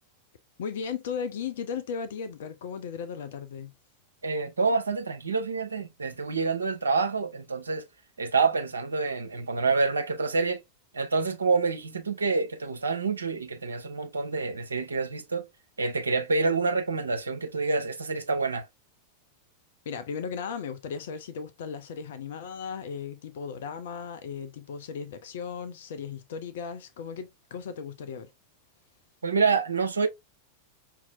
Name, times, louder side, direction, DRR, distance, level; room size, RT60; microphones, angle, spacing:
voice 1, 0.6-3.7 19.9-28.3, left 6 dB, 55° left, 0.5 m, -36 dB
voice 2, 4.2-7.8 8.2-10.6 10.9-15.4 15.8-18.6 29.2-30.1, right 4 dB, 75° right, 0.8 m, -27 dB
5.8 x 2.8 x 2.4 m
figure-of-eight pair, 90°, 0 cm